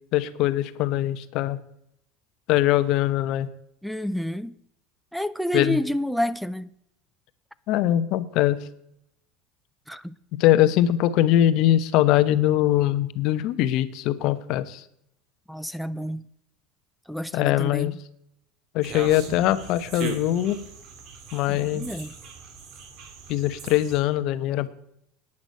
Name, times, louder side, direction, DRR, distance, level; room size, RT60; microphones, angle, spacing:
voice 1, 0.1-1.6 2.5-3.5 5.5-5.8 7.7-8.6 10.3-14.8 17.3-17.9 18.7-20.6 21.3-22.1 23.3-24.7, left 13 dB, 60° left, 0.9 m, -22 dB
voice 2, 3.8-4.6 5.1-6.7 9.9-10.1 15.5-16.2 17.1-17.9 21.5-22.1, equal, ahead, 0.5 m, -29 dB
sound 1, 18.8-24.0, right 4 dB, 55° right, 2.7 m, -39 dB
11.0 x 9.8 x 5.4 m
supercardioid pair, 100°, 0 cm